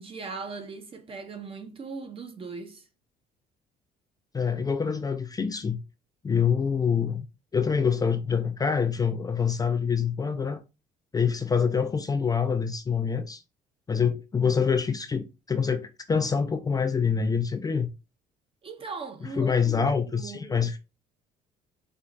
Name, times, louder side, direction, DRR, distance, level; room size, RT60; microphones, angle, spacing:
voice 1, 0.0-2.9 18.6-20.6, right 4 dB, 35° right, 0.8 m, -39 dB
voice 2, 4.3-5.8 6.2-7.3 7.5-10.6 11.1-13.4 13.9-17.9 19.4-20.8, left 6 dB, 20° left, 0.4 m, -26 dB
4.5 x 2.4 x 3.9 m
cardioid pair, 110°, 17 cm